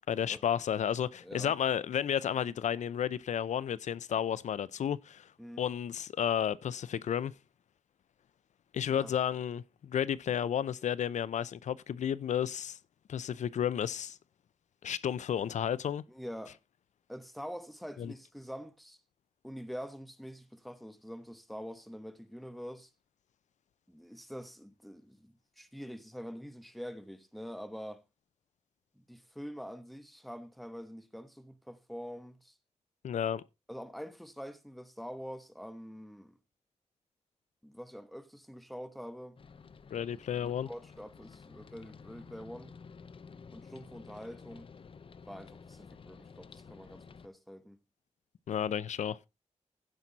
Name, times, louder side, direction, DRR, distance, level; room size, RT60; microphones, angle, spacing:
voice 1, 0.1-5.3 5.6-7.3 8.7-12.8 13.1-14.2 14.8-16.0 18.0-18.1 33.0-33.4 39.9-40.7 48.5-49.2, left 9 dB, 85° left, 0.5 m, -32 dB
voice 2, 1.2-1.5 5.4-5.6 9.0-9.1 16.1-16.6 17.1-19.0 19.4-22.9 23.9-28.0 28.9-32.6 33.7-36.4 37.6-39.4 40.3-42.7 43.5-44.7 45.3-47.8, equal, ahead, 1.1 m, -45 dB
sound 1, 39.4-47.3, left 5 dB, 50° left, 0.7 m, -52 dB
16.0 x 5.9 x 4.0 m
wide cardioid pair, 125°, 12 cm